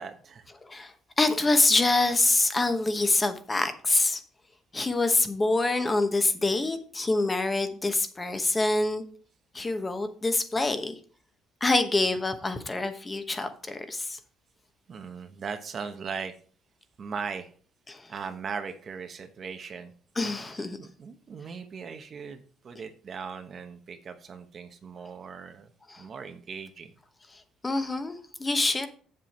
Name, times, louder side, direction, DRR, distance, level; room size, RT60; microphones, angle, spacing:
voice 1, 0.0-0.5 14.9-16.3 17.0-17.5 18.1-19.9 20.5-25.7 26.0-26.9, right 5 dB, 40° right, 7 dB, 1.0 m, -39 dB
voice 2, 0.6-4.2 4.7-9.0 9.5-10.9 11.6-14.2 17.9-18.0 20.2-20.8 25.9-26.0 27.6-28.9, left 2 dB, 20° left, 9 dB, 1.0 m, -26 dB
7.7 x 7.6 x 4.3 m, 0.43 s
cardioid pair, 135°, 0 cm